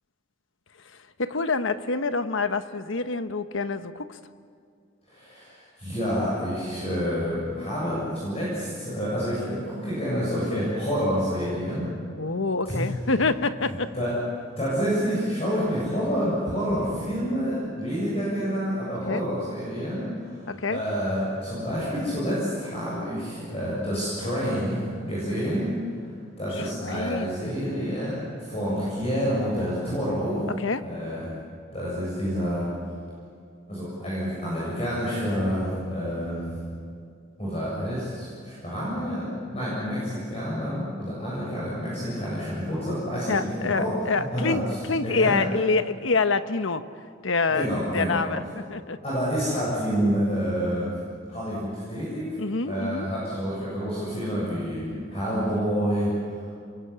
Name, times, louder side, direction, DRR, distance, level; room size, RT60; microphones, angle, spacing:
voice 1, 0.9-4.2 12.2-13.9 19.1-19.2 20.5-20.8 26.6-27.6 30.6-30.9 43.3-44.6 44.9-46.8 47.2-47.7 47.9-49.0 52.4-53.1, left 4 dB, 80° left, 10 dB, 1.1 m, -26 dB
voice 2, 5.1-11.9 12.7-12.8 13.6-14.1 14.6-25.7 26.4-30.4 30.8-31.3 31.7-32.7 33.7-36.6 37.4-43.9 44.3-44.6 45.0-45.4 47.5-48.2 49.0-51.0 51.3-52.3 52.6-56.5, equal, 30° left, -7 dB, 7.6 m, -28 dB
28.0 x 22.5 x 8.7 m, 2.3 s
head